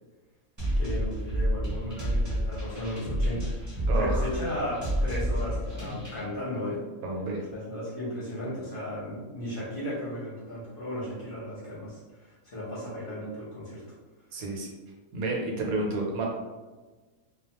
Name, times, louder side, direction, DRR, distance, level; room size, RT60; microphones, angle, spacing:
sound 1, 0.6-6.2, equal, 20° right, 0.6 m, -29 dB
voice 1, 0.8-6.8 7.5-13.8, left 1 dB, 45° left, -8 dB, 0.8 m, -35 dB
voice 2, 3.9-4.3 7.0-7.4 14.3-14.7 15.1-16.3, right 2 dB, 80° right, -1 dB, 1.1 m, -30 dB
2.3 x 2.2 x 2.8 m, 1.2 s
omnidirectional pair, 1.5 m